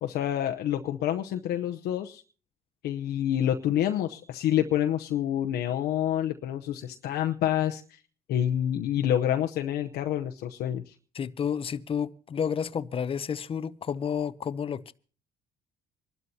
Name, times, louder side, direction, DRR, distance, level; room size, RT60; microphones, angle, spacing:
voice 1, 0.0-2.2 2.8-8.0 8.3-10.9, left 11 dB, 75° left, 0.8 m, -28 dB
voice 2, 11.1-14.9, left 7 dB, 35° left, 0.7 m, -31 dB
26.0 x 12.5 x 2.8 m
cardioid pair, 110°, 17 cm